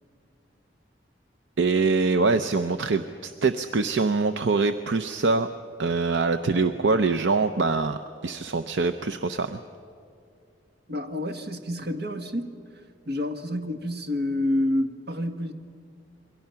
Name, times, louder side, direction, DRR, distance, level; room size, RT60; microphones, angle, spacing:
voice 1, 1.6-5.5 5.8-9.6, right 3 dB, 75° right, 9 dB, 0.7 m, -24 dB
voice 2, 10.9-12.5 13.1-15.5, left 1 dB, 60° right, 6 dB, 1.6 m, -28 dB
28.0 x 23.0 x 5.8 m, 2.5 s
head